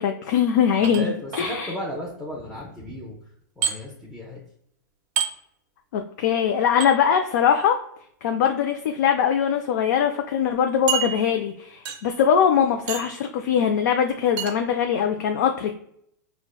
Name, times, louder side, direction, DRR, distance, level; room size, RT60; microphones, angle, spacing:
voice 1, 0.0-1.8 5.9-7.8 8.2-15.7, left 8 dB, 65° left, 5 dB, 0.4 m, -22 dB
sound 1, 0.8-1.4 3.6-3.8 5.2-5.3 6.8-6.9 8.3-8.5 9.3-9.4 9.7-9.8 10.9-11.5 11.8-12.2 12.9-13.2 14.4-14.6, right 8 dB, 40° right, 0.5 m, -28 dB
voice 2, 0.9-3.2 3.6-4.4, equal, ahead, -6 dB, 0.5 m, -34 dB
4.6 x 2.1 x 2.2 m, 0.70 s
hypercardioid pair, 140°, 10 cm